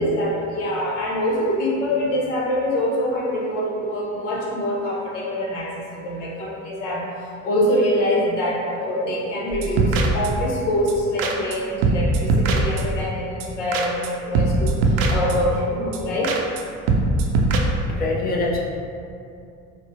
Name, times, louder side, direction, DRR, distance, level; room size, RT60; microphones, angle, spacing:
voice 1, 0.0-7.0 7.4-16.3, equal, 85° left, -4 dB, 0.7 m, -24 dB
sound 1, 9.5-10.5 10.9-11.0 11.2-11.6 11.8-13.0 13.4-14.1 14.3-15.6 15.9-16.0 16.2-16.6 16.9-17.6, right 2 dB, 70° right, 0.5 m, -21 dB
voice 2, 17.9-18.6, left 2 dB, 25° left, -2 dB, 0.6 m, -24 dB
4.4 x 2.0 x 2.7 m, 2.5 s
hypercardioid pair, 65°, 35 cm